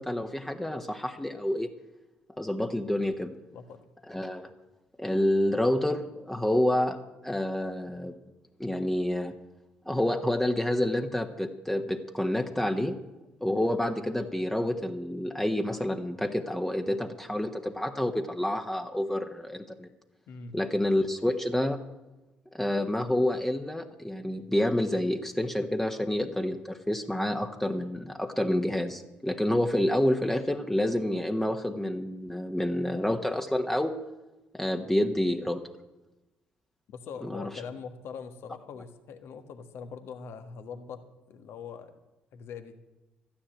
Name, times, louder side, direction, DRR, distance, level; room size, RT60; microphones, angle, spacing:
voice 1, 0.0-1.7 2.4-3.3 4.1-4.5 5.0-7.0 7.2-8.1 8.6-9.3 9.8-12.9 13.4-19.9 20.5-21.8 22.5-34.0 34.5-35.6 37.2-37.5, left 1 dB, 5° left, 4 dB, 1.3 m, -28 dB
voice 2, 36.9-41.0 41.3-42.0 42.3-42.8, left 6 dB, 60° left, 8 dB, 1.5 m, -42 dB
13.0 x 10.0 x 8.9 m, 1.1 s
hypercardioid pair, 50°, 5 cm